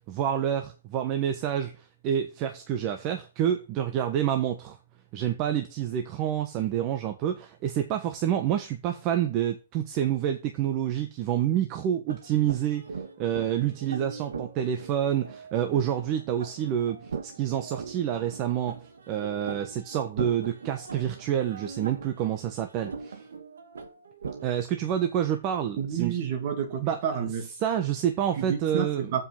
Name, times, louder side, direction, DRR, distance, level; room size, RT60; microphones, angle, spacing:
voice 1, 0.1-4.8 5.1-12.8 13.2-23.2 24.4-26.2 26.8-27.0 27.6-29.1, right 10 dB, 35° right, 1.2 m, -28 dB
sound 1, 12.1-24.5, right 5 dB, 85° right, 1.9 m, -40 dB
voice 2, 25.8-27.5 28.4-29.2, right 8 dB, 50° right, 2.8 m, -30 dB
7.6 x 5.5 x 7.3 m
hypercardioid pair, 140°, 0 cm